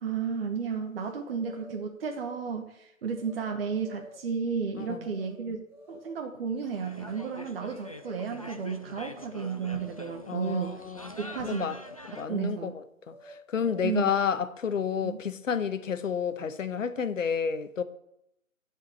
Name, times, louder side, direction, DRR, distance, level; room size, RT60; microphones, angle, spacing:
voice 1, 0.0-10.8 11.2-11.8 12.3-12.7 13.8-14.1 15.0-15.2, right 6 dB, 45° right, 1.2 m, -33 dB
sound 1, 1.4-2.5 3.2-3.4 3.7-4.3 5.1-5.4 5.7-6.3 7.0-7.4 7.7-8.3 9.0-9.4 9.7-10.3 11.2-11.5 11.7-12.5 13.1-14.1, equal, 5° right, 1.7 m, -50 dB
sound 2, 6.6-12.3, left 1 dB, 30° left, 0.4 m, -44 dB
voice 2, 10.3-11.1 11.4-11.8 12.1-17.8, left 7 dB, 70° left, 1.0 m, -30 dB
12.0 x 4.9 x 7.1 m
hypercardioid pair, 150°, 41 cm